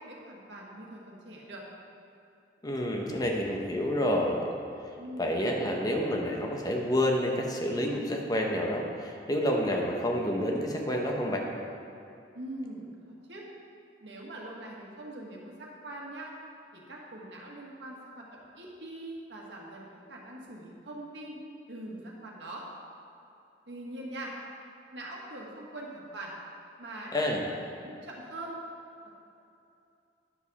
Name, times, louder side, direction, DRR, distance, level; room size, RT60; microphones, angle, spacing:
voice 1, 0.0-1.6 4.9-5.4 12.3-13.4 14.0-16.3 16.7-21.4 21.7-22.6 23.7-24.3 24.9-26.3 26.8-27.1 27.6-28.5, right 1 dB, 90° right, -2 dB, 1.6 m, -43 dB
voice 2, 2.6-4.5 5.2-11.5 27.1-27.4, equal, 20° left, 1 dB, 0.9 m, -29 dB
9.9 x 6.9 x 4.1 m, 2.7 s
head